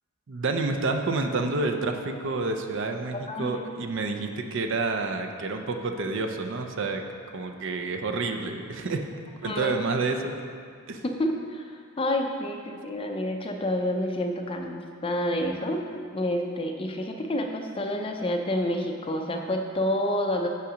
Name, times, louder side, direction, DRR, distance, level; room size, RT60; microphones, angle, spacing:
voice 1, 0.3-7.0 7.3-9.0 9.4-10.3 10.9-11.0, right 3 dB, 55° right, 5 dB, 0.5 m, -29 dB
voice 2, 9.4-9.8 11.0-15.8 16.1-20.5, left 1 dB, 25° left, 3 dB, 0.4 m, -29 dB
6.3 x 5.6 x 5.0 m, 2.2 s
head